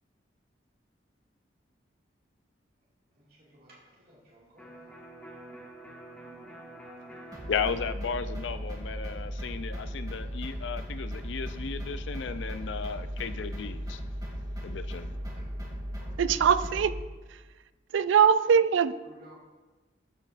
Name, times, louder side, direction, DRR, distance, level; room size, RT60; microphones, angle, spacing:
voice 1, 3.1-4.9 6.1-6.8 15.1-16.7 18.5-18.6 18.8-19.4, right 1 dB, 55° right, -5 dB, 2.2 m, -57 dB
Electric guitar, 4.6-12.2, right 1 dB, 10° left, 1.2 m, -50 dB
sound 1, 7.3-17.0, equal, 20° right, 2.1 m, -37 dB
voice 2, 7.5-14.0 14.6-15.1, left 6 dB, 75° left, 12 dB, 0.5 m, -35 dB
voice 3, 16.2-16.9 17.3-17.4 17.9-18.9, right 7 dB, 85° right, 14 dB, 0.4 m, -22 dB
12.5 x 7.6 x 2.5 m, 1.2 s
head